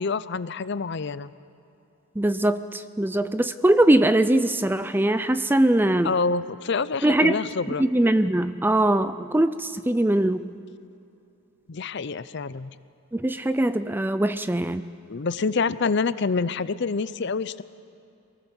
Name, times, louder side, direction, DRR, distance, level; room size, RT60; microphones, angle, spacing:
voice 1, 0.0-1.3 6.0-7.9 11.7-12.7 15.1-17.6, left 4 dB, 50° left, 15 dB, 0.5 m, -27 dB
voice 2, 2.2-6.1 7.0-7.4 7.8-10.5 13.1-14.8, right 1 dB, 10° right, 12 dB, 0.4 m, -21 dB
24.5 x 18.5 x 7.2 m, 2.7 s
head